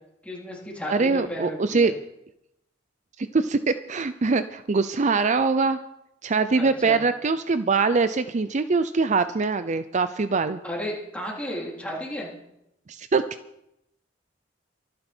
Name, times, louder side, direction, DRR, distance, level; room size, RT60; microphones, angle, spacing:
voice 1, 0.2-1.9 6.6-7.0 10.6-12.3, equal, 5° left, -3 dB, 3.7 m, -33 dB
voice 2, 0.9-1.9 3.2-5.8 6.2-10.6 12.9-13.2, right 4 dB, 40° right, 12 dB, 0.5 m, -23 dB
24.5 x 9.6 x 4.5 m, 0.83 s
head